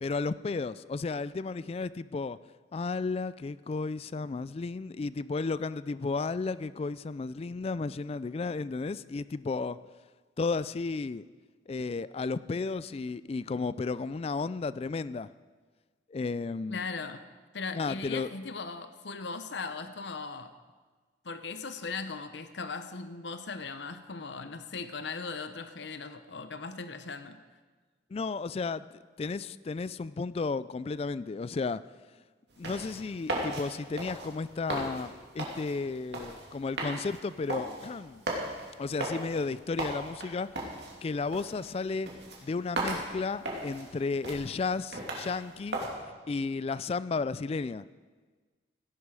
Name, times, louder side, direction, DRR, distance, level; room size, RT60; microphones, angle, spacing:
voice 1, 0.0-2.4 2.7-9.8 10.4-11.2 11.7-15.3 16.1-16.9 17.7-18.3 28.1-31.8 32.6-38.2 38.8-40.5 41.0-42.1 42.4-45.8 46.3-47.8, left 4 dB, 30° left, 17 dB, 0.3 m, -33 dB
voice 2, 16.7-17.2 17.5-20.5 21.2-27.4, left 4 dB, 65° left, 10 dB, 0.7 m, -38 dB
sound 1, 32.5-45.9, right 1 dB, 65° right, 2.9 m, -38 dB
17.0 x 11.0 x 4.8 m, 1.4 s
head